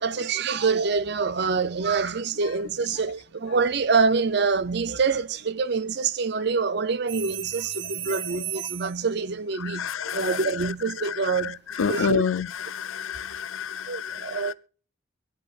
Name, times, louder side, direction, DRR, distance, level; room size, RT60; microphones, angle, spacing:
voice 1, 0.0-12.2 13.9-14.5, right 4 dB, 55° right, 0.6 m, -26 dB
sound 1, 7.1-9.1 11.5-11.7, right 12 dB, 70° right, 1.0 m, -34 dB
voice 2, 9.6-10.4 11.8-14.5, left 6 dB, 85° left, 0.5 m, -28 dB
24.0 x 8.3 x 2.4 m
head